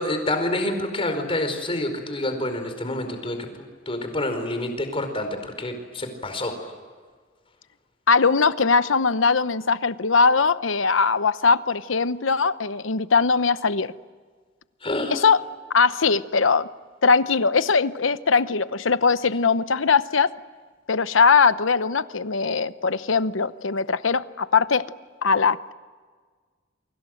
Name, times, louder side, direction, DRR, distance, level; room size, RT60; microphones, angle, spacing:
voice 1, 0.0-6.6 14.8-15.2, left 1 dB, 30° left, 6 dB, 4.8 m, -28 dB
voice 2, 8.1-13.9 15.1-15.4 15.7-16.7 17.0-20.3 20.9-24.8 25.2-25.7, left 5 dB, 85° left, 14 dB, 0.9 m, -20 dB
29.5 x 24.5 x 7.9 m, 1.5 s
head